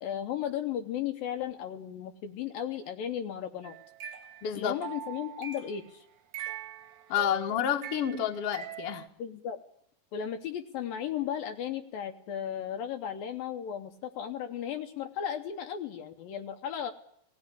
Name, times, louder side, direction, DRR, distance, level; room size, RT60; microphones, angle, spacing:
voice 1, 0.0-3.8 4.5-6.0 9.2-9.6 10.1-16.9, left 9 dB, 70° left, 6 dB, 2.4 m, -35 dB
sound 1, 3.6-5.8 6.3-9.1, right 11 dB, 70° right, 1.8 m, -43 dB
voice 2, 4.4-4.7 7.1-9.0, left 9 dB, 55° left, 5 dB, 1.8 m, -29 dB
18.0 x 16.0 x 9.7 m, 0.72 s
omnidirectional pair, 4.7 m